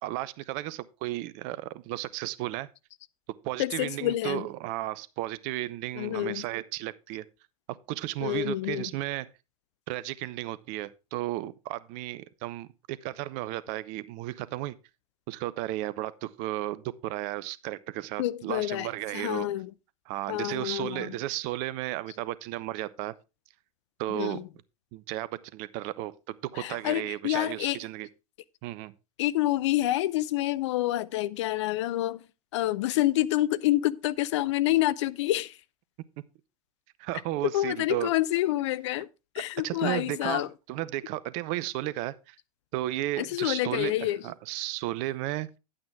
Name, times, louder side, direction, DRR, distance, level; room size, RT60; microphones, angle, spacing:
voice 1, 0.0-2.7 3.4-7.2 7.7-9.3 9.9-14.7 15.3-19.5 20.1-23.1 24.0-24.4 24.9-28.1 28.6-28.9 37.0-38.1 39.6-40.4 40.7-42.4 42.7-45.6, right 16 dB, 40° right, 0.6 m, -34 dB
voice 2, 3.6-4.5 6.0-6.4 8.2-8.9 18.2-18.9 19.1-19.7 20.3-21.2 24.1-24.5 26.6-27.8 29.2-32.2 32.5-35.5 37.4-39.1 39.3-40.5 43.2-44.2, left 15 dB, 50° left, 0.5 m, -28 dB
10.5 x 8.8 x 3.4 m
figure-of-eight pair, 90°, 19 cm